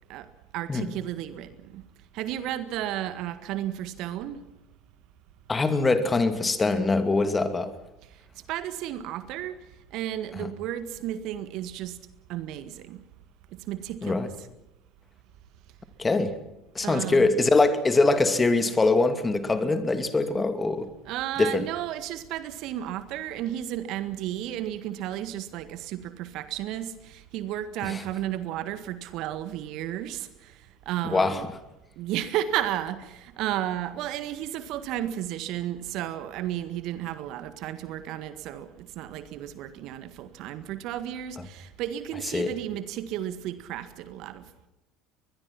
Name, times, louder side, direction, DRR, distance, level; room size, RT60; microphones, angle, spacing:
voice 1, 0.1-1.8 2.1-4.4 8.0-9.6 9.9-12.0 12.3-13.0 13.6-14.5 16.8-17.3 21.0-31.5 31.9-44.4, right 12 dB, 55° right, 12 dB, 1.7 m, -33 dB
voice 2, 5.5-7.7 10.4-10.5 14.0-14.3 16.0-16.4 16.7-20.9 21.4-21.7 27.8-28.0 31.0-31.4 42.3-42.5, left 3 dB, 20° left, 10 dB, 2.6 m, -23 dB
22.5 x 21.5 x 5.9 m, 0.94 s
figure-of-eight pair, 70°, 0 cm